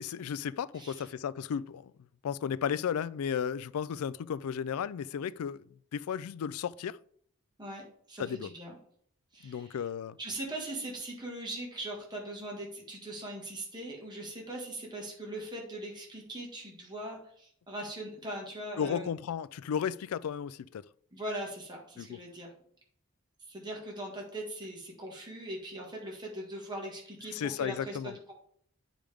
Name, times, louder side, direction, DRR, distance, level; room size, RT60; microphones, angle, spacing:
voice 1, 0.0-1.9 2.2-5.6 5.9-7.0 8.2-8.5 9.4-10.2 18.8-20.8 22.0-22.2 27.3-28.1, left 7 dB, 80° left, 0.3 m, -34 dB
voice 2, 0.7-1.0 7.6-8.7 9.3-9.8 10.2-19.1 21.1-22.5 23.5-28.3, right 1 dB, 20° right, 1.6 m, -40 dB
9.0 x 5.1 x 3.5 m
head